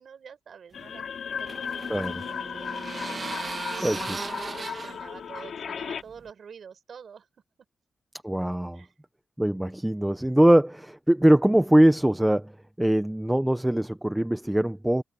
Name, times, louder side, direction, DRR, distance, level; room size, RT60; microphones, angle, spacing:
voice 1, 0.0-7.3 8.7-8.9, right 7 dB, 70° right, 5.5 m, -48 dB
sound 1, 0.7-6.0, left 7 dB, 80° left, 2.8 m, -35 dB
sound 2, 0.8-6.3, right 4 dB, 40° right, 1.4 m, -38 dB
voice 2, 1.9-2.2 3.8-4.0 8.2-8.8 9.4-12.5 12.8-15.0, right 1 dB, 5° right, 0.9 m, -22 dB
wide cardioid pair, 115°, 0 cm